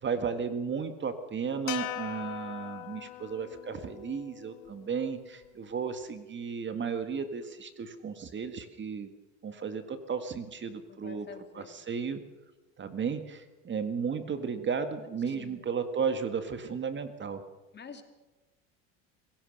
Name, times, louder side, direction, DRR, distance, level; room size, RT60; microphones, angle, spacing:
voice 1, 0.0-9.1 9.4-11.3 11.5-12.2 12.8-17.4, right 6 dB, 30° right, 9 dB, 1.8 m, -34 dB
sound 1, 1.7-6.0, left 17 dB, 60° left, 1.1 m, -42 dB
voice 2, 10.9-11.8 15.3-15.6 17.7-18.0, left 6 dB, 30° left, 7 dB, 2.8 m, -47 dB
25.5 x 16.5 x 6.6 m, 1.1 s
supercardioid pair, 100°, 36 cm